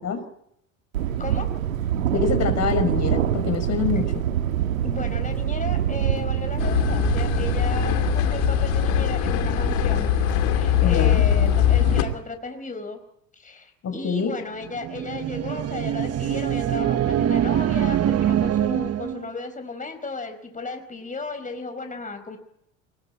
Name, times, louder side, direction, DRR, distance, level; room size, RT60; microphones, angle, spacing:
Thunder, 0.9-12.1, right 10 dB, 90° right, 1.6 m, -26 dB
voice 1, 1.2-1.5 4.8-10.2 10.5-13.0 13.4-22.4, left 3 dB, 20° left, 7 dB, 4.9 m, -34 dB
voice 2, 2.1-4.3 10.8-11.2 13.8-14.4, left 5 dB, 40° left, 7 dB, 5.5 m, -25 dB
sound 1, 6.6-12.0, left 19 dB, 70° left, 2.8 m, -22 dB
sound 2, 14.6-19.3, right 10 dB, 35° right, 1.1 m, -24 dB
24.5 x 21.5 x 9.0 m, 0.76 s
hypercardioid pair, 75°, 40 cm